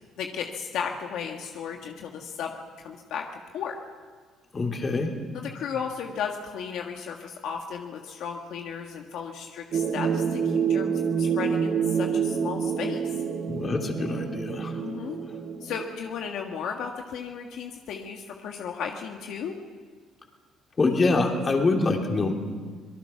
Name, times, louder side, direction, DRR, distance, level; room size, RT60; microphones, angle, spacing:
voice 1, 0.2-3.2 3.5-3.7 5.3-13.0 14.8-15.2 15.6-19.5, left 7 dB, 75° left, 2 dB, 1.6 m, -35 dB
voice 2, 4.5-5.2 13.5-14.7 20.8-22.3, left 3 dB, 30° left, 2 dB, 3.2 m, -25 dB
sound 1, 9.7-15.9, right 6 dB, 60° right, 5.9 m, -27 dB
26.0 x 19.0 x 6.0 m, 1.5 s
cardioid pair, 90°, 0 cm